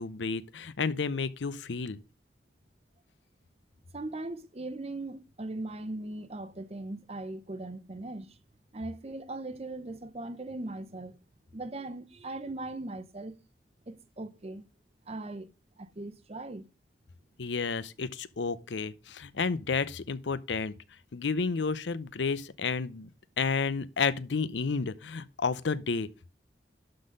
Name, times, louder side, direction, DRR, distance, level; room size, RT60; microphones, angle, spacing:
voice 1, 0.0-2.0 17.4-20.7 21.1-23.1 23.4-26.3, left 5 dB, 85° left, 0.6 m, -31 dB
voice 2, 3.9-8.4 8.7-11.2 11.5-13.4 13.9-14.7 15.1-15.5 15.8-16.7, right 2 dB, 35° right, 0.7 m, -39 dB
12.0 x 3.9 x 5.2 m
head